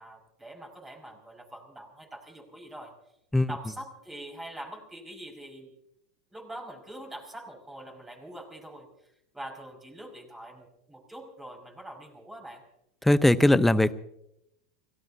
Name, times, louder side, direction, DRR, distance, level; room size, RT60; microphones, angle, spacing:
voice 1, 0.0-2.9 3.5-5.7 6.3-12.6, right 1 dB, 10° right, 2 dB, 5.7 m, -44 dB
voice 2, 13.0-13.9, left 1 dB, 5° left, 15 dB, 0.8 m, -20 dB
30.0 x 17.5 x 2.8 m, 0.82 s
hypercardioid pair, 90°, 3 cm